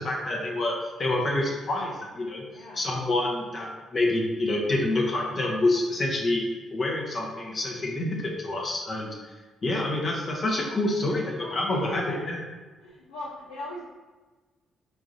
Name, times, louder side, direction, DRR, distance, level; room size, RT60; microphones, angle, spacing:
voice 1, 0.0-6.4 6.7-9.4 9.6-12.4, left 2 dB, 45° left, -1 dB, 1.0 m, -27 dB
voice 2, 2.5-2.8 11.4-12.2 12.8-13.8, left 1 dB, 75° left, -7 dB, 0.7 m, -38 dB
4.5 x 3.8 x 2.7 m, 1.3 s
figure-of-eight pair, 45°, 0 cm